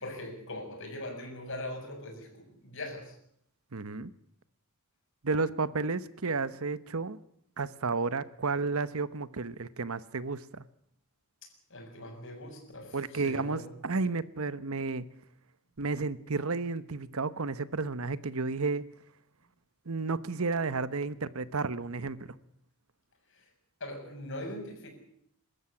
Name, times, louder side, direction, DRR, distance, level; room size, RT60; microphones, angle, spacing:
voice 1, 0.0-3.1 11.7-13.7 23.3-23.4 23.8-24.9, left 1 dB, 60° left, 3 dB, 6.6 m, -41 dB
voice 2, 3.7-4.1 5.2-7.2 7.6-10.6 12.9-15.1 15.8-18.8 19.9-22.3, right 4 dB, 70° right, 16 dB, 1.0 m, -32 dB
24.5 x 13.5 x 9.9 m, 0.71 s
head